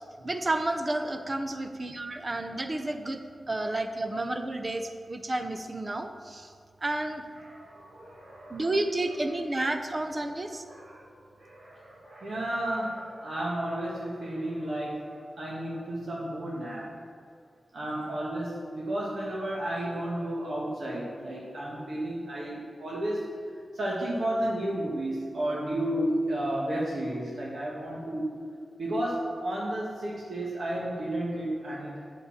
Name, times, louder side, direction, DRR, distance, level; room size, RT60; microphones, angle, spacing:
voice 1, 0.2-3.2 3.5-6.5 6.8-7.2 8.5-10.6, right 2 dB, 30° right, 7 dB, 0.8 m, -31 dB
voice 2, 7.4-8.7 10.6-11.1 11.4-15.1 15.4-17.0 17.7-23.3 23.7-28.3 28.8-32.0, right 1 dB, 70° right, -5 dB, 1.8 m, -32 dB
8.8 x 6.8 x 7.3 m, 2.2 s
wide cardioid pair, 130°, 0 cm